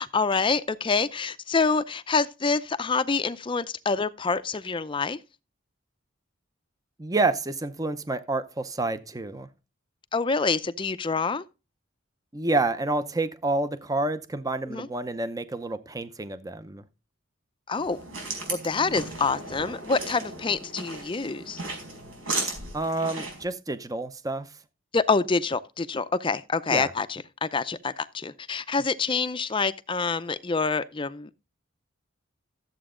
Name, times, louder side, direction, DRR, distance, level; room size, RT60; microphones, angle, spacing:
voice 1, 0.0-5.2 10.1-11.4 14.7-14.9 17.7-18.0 18.5-21.6 24.9-31.3, left 4 dB, 25° left, 0.5 m, -26 dB
voice 2, 7.0-9.5 12.3-16.8 22.7-24.5 26.7-26.9, right 2 dB, 20° right, 0.6 m, -28 dB
sound 1, 17.7-23.4, right 3 dB, 85° right, 4.9 m, -35 dB
13.5 x 7.9 x 3.7 m
head